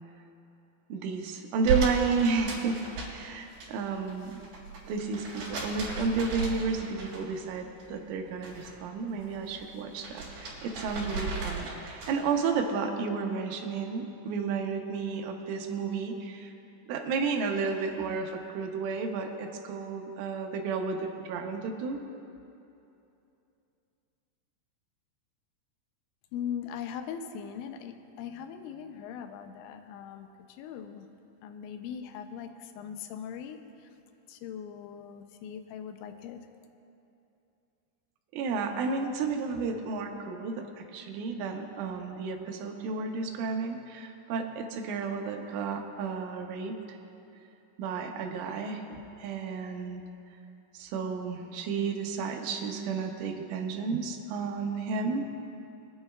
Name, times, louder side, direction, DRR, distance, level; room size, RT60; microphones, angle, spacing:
voice 1, 0.9-2.8 3.1-4.4 4.9-16.5 16.9-22.0 38.3-47.0 47.8-50.0 50.7-55.3, right 5 dB, 80° right, 3 dB, 3.3 m, -32 dB
sound 1, 1.6-3.7 4.0-7.5 7.8-8.7 9.1-12.3, right 4 dB, 55° right, 4.5 m, -35 dB
voice 2, 26.3-31.1 31.4-33.6 34.3-36.4, left 8 dB, 85° left, 7 dB, 2.7 m, -40 dB
26.5 x 9.7 x 2.3 m, 2.8 s
omnidirectional pair, 5.7 m